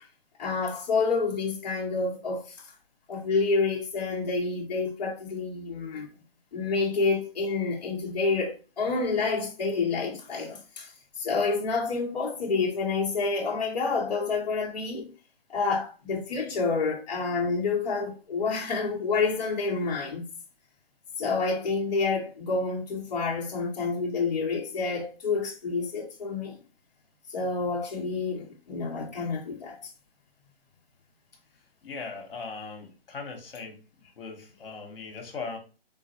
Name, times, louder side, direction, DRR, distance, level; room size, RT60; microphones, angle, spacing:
voice 1, 0.4-2.7 3.1-6.1 6.5-15.1 15.5-20.2 21.2-26.6 27.3-29.8, left 4 dB, 45° left, 0.9 m, -28 dB
voice 2, 31.8-33.8 34.2-35.6, left 4 dB, 65° left, 1.1 m, -39 dB
3.8 x 2.1 x 2.7 m
hypercardioid pair, 165°, 30 cm